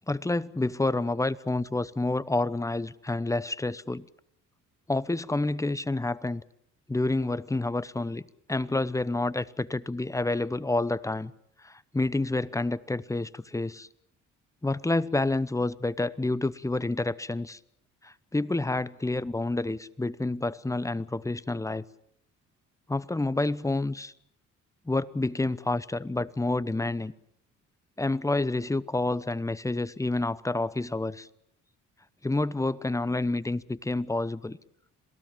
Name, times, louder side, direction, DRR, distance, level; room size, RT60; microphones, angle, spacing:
voice 1, 0.1-4.0 4.9-6.4 6.9-11.3 11.6-13.9 14.6-17.6 18.0-21.9 22.9-24.1 24.9-27.1 28.0-31.3 32.2-34.6, left 2 dB, 10° left, 0.9 m, -29 dB
27.5 x 18.5 x 7.4 m
cardioid pair, 90°, 30 cm